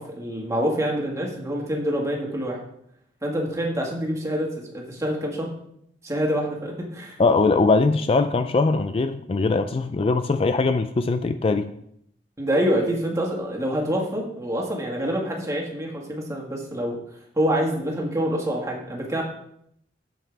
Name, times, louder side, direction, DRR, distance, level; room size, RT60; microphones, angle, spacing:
voice 1, 0.0-2.6 3.2-5.5 6.0-7.2 12.4-17.0 17.4-19.2, equal, 20° right, -1 dB, 1.8 m, -26 dB
voice 2, 7.2-11.7, left 3 dB, 35° left, 10 dB, 0.3 m, -21 dB
8.9 x 7.7 x 3.4 m, 0.73 s
head